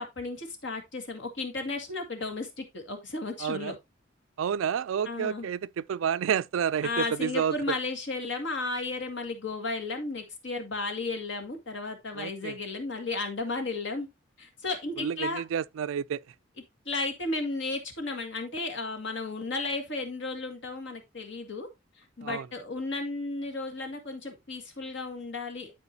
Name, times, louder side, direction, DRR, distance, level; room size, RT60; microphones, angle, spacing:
voice 1, 0.0-3.8 5.0-5.5 6.8-14.1 14.4-15.4 16.9-21.7 22.0-25.7, left 3 dB, 65° left, 2.1 m, -34 dB
voice 2, 3.4-3.7 4.4-7.8 12.2-12.5 15.0-16.2 22.2-22.5, right 8 dB, 80° right, 0.3 m, -30 dB
12.5 x 4.7 x 2.8 m
head